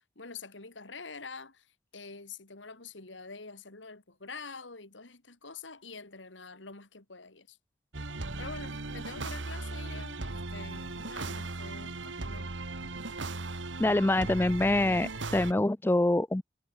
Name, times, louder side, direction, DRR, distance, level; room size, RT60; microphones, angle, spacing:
voice 1, 0.0-7.6 8.1-12.5, left 4 dB, 85° left, 3.0 m, -46 dB
sound 1, 7.9-15.5, right 2 dB, 80° right, 1.8 m, -38 dB
voice 2, 13.8-16.4, left 1 dB, 10° left, 0.4 m, -25 dB
head